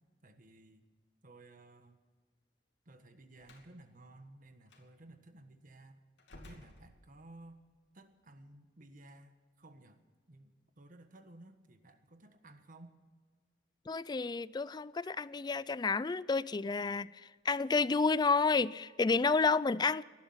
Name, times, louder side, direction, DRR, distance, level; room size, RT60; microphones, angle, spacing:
voice 1, 0.2-0.8 1.2-2.0 2.8-6.0 6.3-7.6 7.9-10.0 10.3-13.0, right 2 dB, 50° right, 1.4 m, -56 dB
Slam, 3.4-3.7 4.7-4.9 6.2-7.5, left 1 dB, 80° left, 2.6 m, -55 dB
voice 2, 13.9-20.0, left 4 dB, 25° left, 0.4 m, -30 dB
18.5 x 12.0 x 5.7 m
head